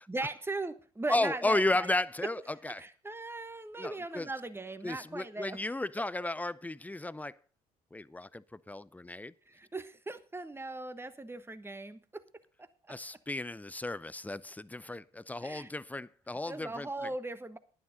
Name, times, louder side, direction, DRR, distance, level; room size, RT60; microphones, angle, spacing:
voice 1, 0.1-1.9 2.8-5.6 9.5-12.2 12.6-12.7 15.4-15.7 16.5-17.6, right 2 dB, 10° right, 1.2 m, -39 dB
voice 2, 1.1-2.8 3.8-4.3 4.8-7.3 7.9-9.3 12.9-17.1, left 2 dB, 10° left, 0.6 m, -34 dB
11.0 x 9.7 x 5.2 m
hypercardioid pair, 60°, 19 cm